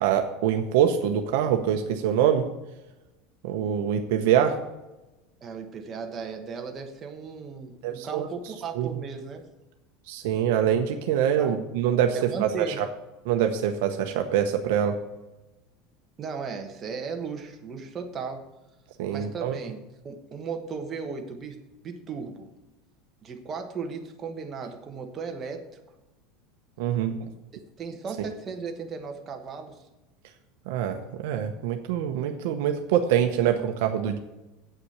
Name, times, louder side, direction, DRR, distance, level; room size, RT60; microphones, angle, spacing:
voice 1, 0.0-2.5 3.4-4.6 7.8-8.3 8.8-8.9 10.1-12.8 13.2-15.0 19.0-19.6 26.8-27.2 30.7-34.2, right 9 dB, 60° right, 5 dB, 0.9 m, -24 dB
voice 2, 5.4-9.4 11.4-11.5 12.1-12.8 16.2-18.4 19.1-21.6 21.8-22.5 23.2-25.6 27.8-29.8, right 5 dB, 20° right, 3 dB, 1.1 m, -36 dB
8.6 x 5.9 x 7.9 m, 1.0 s
supercardioid pair, 180°, 0 cm